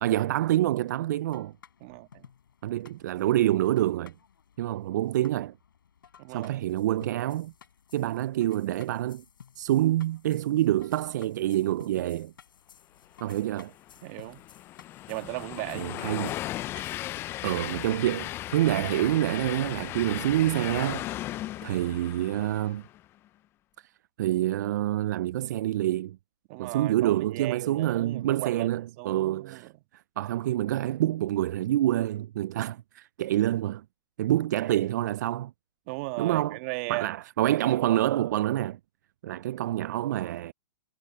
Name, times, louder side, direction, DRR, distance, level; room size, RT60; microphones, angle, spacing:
voice 1, 0.0-1.5 2.6-4.1 4.6-5.5 6.3-7.5 7.9-9.2 9.6-12.3 13.2-13.7 15.7-16.3 17.4-21.1 21.6-22.8 24.2-26.2 26.6-29.7 30.2-33.8 34.2-35.5 36.2-36.6 36.9-38.8 39.2-40.5, right 13 dB, 55° right, 0.4 m, -27 dB
sound 1, 1.3-17.3, left 8 dB, 75° left, 5.9 m, -55 dB
voice 2, 1.8-2.3 6.2-6.6 14.0-14.4 15.1-15.9 26.5-29.7 35.9-37.1, right 26 dB, 40° right, 1.5 m, -36 dB
Train, 13.6-23.0, left 15 dB, 20° left, 0.4 m, -36 dB
hypercardioid pair, 140°, 11 cm